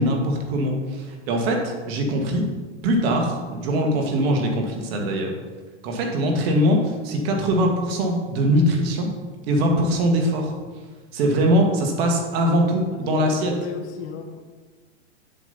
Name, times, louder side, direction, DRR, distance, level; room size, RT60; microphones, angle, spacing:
voice 1, 0.0-2.5 2.8-5.3 5.8-9.1 9.5-10.5 11.1-13.5, equal, 55° right, 2 dB, 1.8 m, -22 dB
voice 2, 12.9-14.4, left 6 dB, 35° left, 5 dB, 1.0 m, -35 dB
7.4 x 7.3 x 4.1 m, 1.4 s
hypercardioid pair, 130°, 35 cm